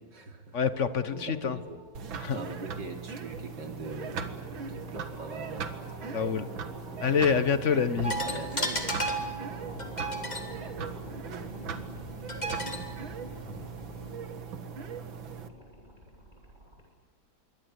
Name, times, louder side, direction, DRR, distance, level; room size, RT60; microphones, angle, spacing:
voice 1, 0.0-0.6 1.1-1.8 2.3-5.7 7.2-7.4 8.2-8.9, right 3 dB, 65° right, 4 dB, 3.7 m, -42 dB
voice 2, 0.5-1.6 2.2-2.4 6.1-6.5 7.0-8.1, left 6 dB, 45° left, 13 dB, 1.3 m, -26 dB
sound 1, 0.7-16.8, left 1 dB, 20° right, 8.3 m, -49 dB
sound 2, 1.9-15.5, right 6 dB, 85° right, 2.4 m, -39 dB
sound 3, 8.0-14.1, right 1 dB, 20° left, 3.0 m, -36 dB
27.5 x 23.5 x 8.3 m, 1.4 s
omnidirectional pair, 2.1 m